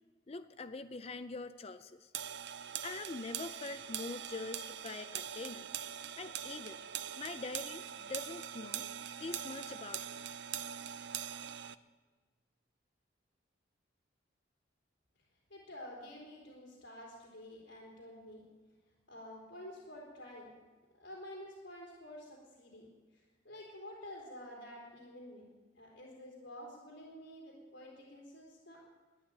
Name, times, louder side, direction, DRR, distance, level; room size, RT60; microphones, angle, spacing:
voice 1, 0.3-2.1 2.8-5.7 6.2-8.9 9.2-10.2, left 3 dB, 35° left, 11 dB, 0.5 m, -44 dB
sound 1, 2.1-11.8, right 9 dB, 70° right, 0.5 m, -42 dB
voice 2, 15.5-18.4 19.1-20.5 21.0-28.8, left 1 dB, 75° left, -5 dB, 3.7 m, -50 dB
12.5 x 10.5 x 9.1 m, 1.3 s
head